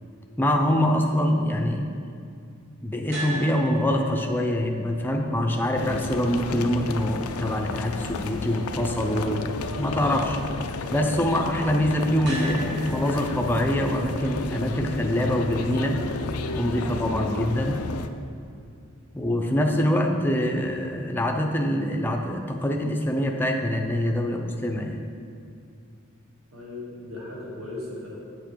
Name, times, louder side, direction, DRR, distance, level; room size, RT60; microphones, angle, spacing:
voice 1, 0.4-1.9 2.8-9.5 9.8-10.4 10.9-16.1 16.6-17.8 19.1-25.0, equal, 10° left, 2 dB, 0.5 m, -24 dB
sound 1, 3.1-19.2, equal, 55° right, 1.6 m, -42 dB
sound 2, 5.7-18.1, left 3 dB, 90° left, 0.5 m, -32 dB
voice 2, 26.5-28.2, left 2 dB, 70° right, -5 dB, 2.2 m, -37 dB
8.1 x 7.2 x 4.6 m, 2.4 s
head